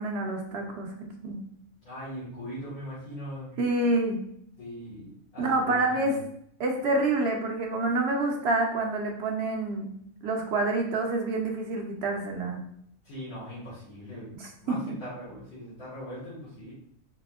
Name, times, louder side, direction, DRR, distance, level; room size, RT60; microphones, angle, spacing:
voice 1, 0.0-1.4 3.6-4.2 5.4-6.2 6.6-9.9 10.2-12.6 14.7-14.8, right 2 dB, 60° right, 2 dB, 0.7 m, -27 dB
voice 2, 1.8-3.6 4.6-6.2 13.0-14.4 14.6-16.7, equal, 80° left, -10 dB, 1.9 m, -40 dB
4.1 x 2.9 x 2.2 m, 0.69 s
omnidirectional pair, 1.4 m